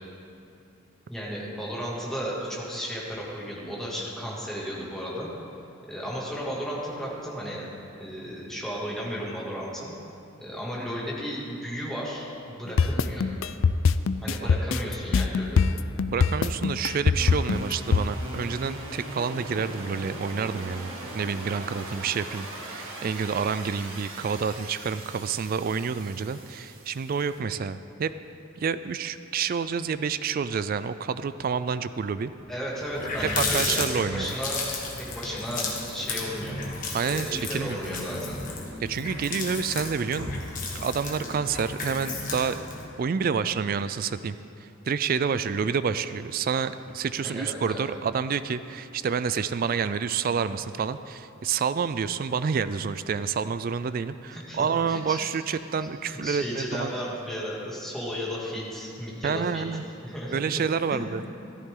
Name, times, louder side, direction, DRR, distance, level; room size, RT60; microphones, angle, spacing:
voice 1, 1.1-5.3 5.9-7.7 8.0-9.9 10.4-13.2 14.2-15.6 32.5-34.6 35.1-36.6 37.1-38.4 47.2-47.8 54.3-55.2 55.5-55.6 56.0-59.7 60.0-60.6 60.9-61.0, equal, ahead, -6 dB, 2.4 m, -34 dB
sound 1, 12.8-18.0, left 5 dB, 70° left, 0.4 m, -22 dB
voice 2, 16.1-28.1 28.6-32.3 33.4-34.3 36.9-37.8 38.8-40.3 40.7-42.6 43.0-56.9 59.2-59.8 60.3-61.2, right 6 dB, 45° right, 13 dB, 0.3 m, -28 dB
sound 2, 17.1-27.4, right 1 dB, 75° right, 2.0 m, -40 dB
Water tap faucet, 32.4-32.5 32.8-42.9, left 3 dB, 40° left, 1.7 m, -33 dB
14.0 x 13.5 x 3.8 m, 2.7 s
head